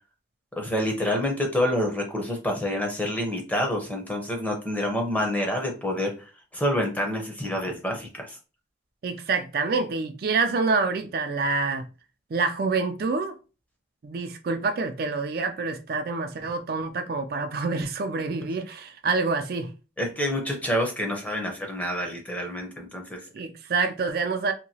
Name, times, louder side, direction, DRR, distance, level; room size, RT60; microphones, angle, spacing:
voice 1, 0.5-8.4 20.0-23.2, left 1 dB, 10° left, 0.6 m, -27 dB
voice 2, 9.0-11.8 12.3-13.3 14.0-19.7 23.3-24.5, right 4 dB, 50° right, 0.3 m, -27 dB
2.9 x 2.7 x 2.7 m
head